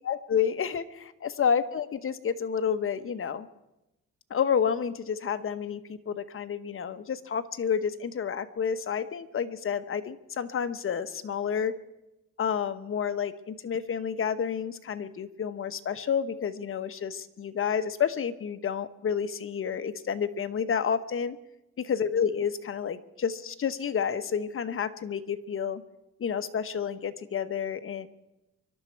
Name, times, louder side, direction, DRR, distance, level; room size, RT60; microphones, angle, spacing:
voice 1, 0.1-3.5 4.3-11.8 12.4-21.4 21.8-25.8 26.2-28.1, left 7 dB, 45° left, 11 dB, 1.1 m, -30 dB
25.0 x 12.0 x 4.6 m, 0.93 s
cardioid pair, 90°, 30 cm